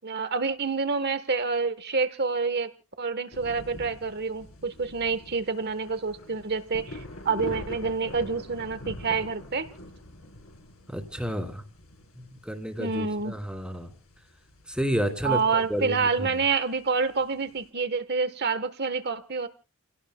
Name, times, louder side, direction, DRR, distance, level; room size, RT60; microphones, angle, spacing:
voice 1, 0.0-2.7 3.0-7.0 7.2-9.7 12.8-13.3 15.2-19.5, right 4 dB, 50° right, 12 dB, 1.2 m, -27 dB
sound 1, 3.3-17.7, left 1 dB, 70° left, 4.2 m, -44 dB
voice 2, 10.9-11.6 12.4-13.9 14.7-16.3, equal, 5° right, 5 dB, 2.4 m, -30 dB
30.0 x 17.5 x 2.2 m, 0.32 s
head